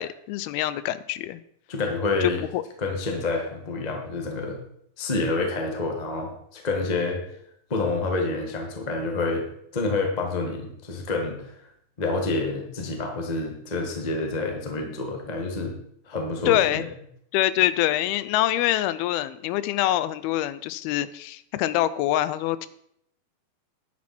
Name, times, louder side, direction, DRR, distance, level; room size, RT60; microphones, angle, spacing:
voice 1, 0.0-1.4 2.2-2.6 16.5-16.9 17.3-22.7, left 14 dB, 85° left, 15 dB, 2.5 m, -25 dB
voice 2, 1.7-2.4 2.8-4.6 5.0-7.2 7.7-9.4 9.7-11.5 12.0-15.7 16.0-16.8, left 3 dB, 55° left, 2 dB, 0.4 m, -28 dB
10.5 x 10.5 x 4.4 m, 0.72 s
omnidirectional pair, 4.4 m